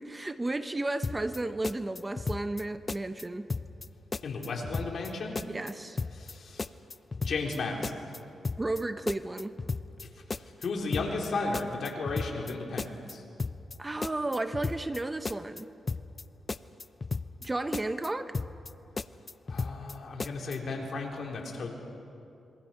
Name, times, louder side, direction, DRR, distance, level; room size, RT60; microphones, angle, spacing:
voice 1, 0.0-3.5 5.5-6.0 8.6-9.5 13.8-15.7 17.4-18.4, right 2 dB, 20° right, 10 dB, 0.9 m, -33 dB
sound 1, 1.0-1.4 1.6-2.6 2.9-3.2 3.5-3.9 4.1-5.1 5.3-5.7 6.0-6.3 6.6-7.6 7.8-8.2 8.4-8.8 9.1-10.0 10.3-10.7 10.9-11.3 11.5-12.5 12.8-13.1 13.4-13.8 14.0-15.0 15.2-15.6 15.9-16.2 16.5-17.5 17.7-18.1 18.3-18.7 19.0-19.9 20.2-20.6, left 4 dB, 35° left, 0.6 m, -34 dB
voice 2, 4.2-5.4 6.1-6.6 7.2-8.1 10.6-13.2 19.5-21.7, left 3 dB, 65° left, 0 dB, 3.9 m, -34 dB
26.5 x 22.5 x 5.9 m, 2.7 s
cardioid pair, 75°, 0 cm